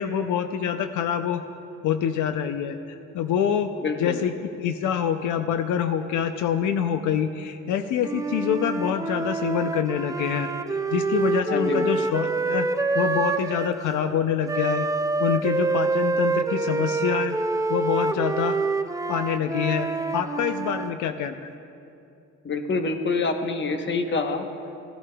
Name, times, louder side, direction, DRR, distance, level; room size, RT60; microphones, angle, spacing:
voice 1, 0.0-1.4 1.8-2.8 3.1-3.7 4.0-4.3 4.6-10.5 10.9-12.7 12.9-14.9 15.2-17.4 17.7-18.6 19.1-19.9 20.1-21.5, left 8 dB, 80° left, 8 dB, 0.5 m, -25 dB
voice 2, 3.8-4.2 11.5-11.9 22.4-24.4, left 3 dB, 40° left, 6 dB, 0.9 m, -26 dB
Wind instrument woodwind instrument, 8.0-13.8 14.5-20.9, right 3 dB, 10° right, 0.3 m, -26 dB
16.0 x 11.0 x 2.3 m, 2.6 s
cardioid pair, 90°, 30 cm